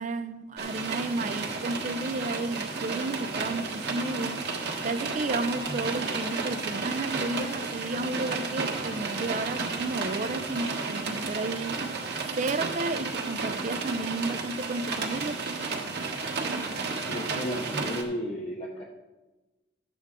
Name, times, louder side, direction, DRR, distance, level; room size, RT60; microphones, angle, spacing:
voice 1, 0.0-4.5 4.8-11.8 12.4-15.4, right 2 dB, 45° right, 0.5 m, -32 dB
sound 1, 0.6-18.0, right 4 dB, 65° right, 1.5 m, -32 dB
voice 2, 17.1-18.8, equal, 30° left, 0.9 m, -34 dB
12.0 x 8.3 x 3.7 m
head